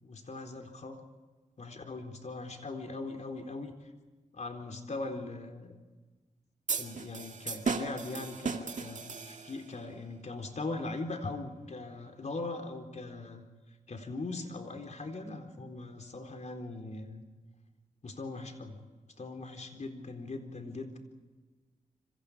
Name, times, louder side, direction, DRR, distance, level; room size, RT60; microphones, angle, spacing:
voice 1, 0.0-1.0 1.6-3.7 4.3-5.8 6.8-13.4 13.9-17.2 18.0-18.8 19.2-21.0, left 3 dB, 55° left, 4 dB, 4.0 m, -40 dB
sound 1, 6.7-9.7, right 5 dB, 60° right, 2.2 m, -36 dB
27.0 x 26.0 x 5.0 m, 1.3 s
wide cardioid pair, 85°, 14 cm